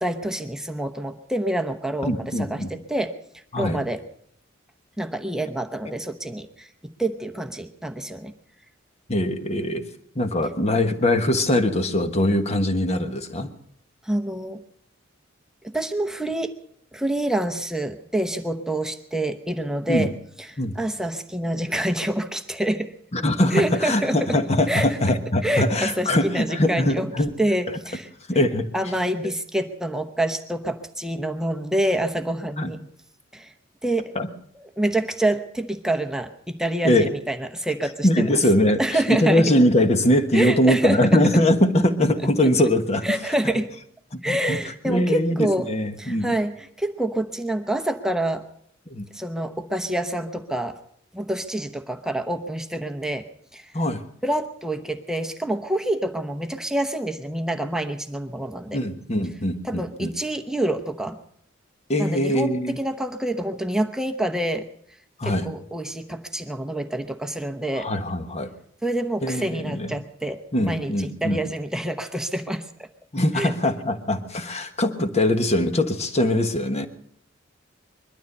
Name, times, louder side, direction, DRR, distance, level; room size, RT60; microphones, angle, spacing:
voice 1, 0.0-4.0 5.0-8.3 14.0-14.6 15.6-16.6 16.9-20.1 20.5-22.9 23.5-24.4 24.7-25.0 25.4-27.1 27.4-28.1 28.7-32.8 33.3-33.5 33.8-34.2 34.6-38.4 38.8-39.5 40.3-41.2 43.0-43.7 44.2-45.7 46.0-48.4 49.1-50.8 51.1-53.7 54.2-58.8 59.6-61.2 62.0-64.7 65.2-67.9 68.8-72.7 73.4-73.5, right 1 dB, 5° right, 6 dB, 0.9 m, -27 dB
voice 2, 2.0-2.7 3.5-3.8 9.1-9.8 10.1-13.5 19.9-20.1 20.6-20.8 23.1-27.3 27.7-27.8 28.3-28.7 32.6-32.7 34.1-34.3 36.8-37.1 38.0-43.0 44.1-44.6 44.8-46.3 48.9-49.1 53.7-54.0 58.7-60.1 61.9-62.8 65.2-65.5 67.7-68.5 69.2-69.9 70.5-71.4 73.1-76.9, left 1 dB, 35° left, 8 dB, 1.3 m, -22 dB
21.5 x 12.5 x 5.4 m, 0.69 s
head